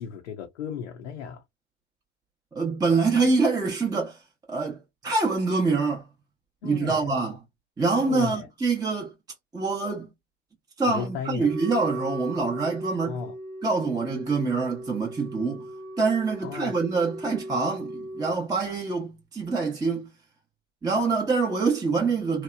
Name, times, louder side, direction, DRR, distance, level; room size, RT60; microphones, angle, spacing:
voice 1, 0.0-1.4 6.6-7.1 8.0-8.5 10.9-11.6 13.0-13.3 16.4-16.7, left 7 dB, 80° left, 0.5 m, -35 dB
voice 2, 2.5-4.2 4.5-6.1 6.6-7.3 7.8-9.1 9.5-10.1 10.8-13.2 13.6-15.6 16.0-20.1 20.8-22.4, right 4 dB, 10° right, 0.6 m, -25 dB
Wind instrument woodwind instrument, 11.3-18.4, right 1 dB, 85° right, 0.6 m, -38 dB
2.8 x 2.0 x 2.3 m
hypercardioid pair, 70°, 35 cm